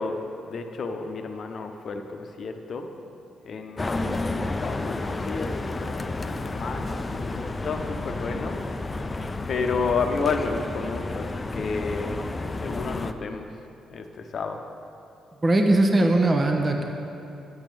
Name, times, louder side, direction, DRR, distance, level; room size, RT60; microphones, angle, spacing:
voice 1, 0.0-2.9 3.4-8.6 9.5-12.2 12.6-13.5 13.9-14.6, left 4 dB, 55° left, 5 dB, 0.8 m, -31 dB
sound 1, 3.8-13.1, left 2 dB, 30° left, 0.5 m, -31 dB
voice 2, 15.4-16.8, right 2 dB, 35° right, 2 dB, 1.1 m, -20 dB
9.7 x 6.1 x 6.9 m, 2.7 s
hypercardioid pair, 45°, 0 cm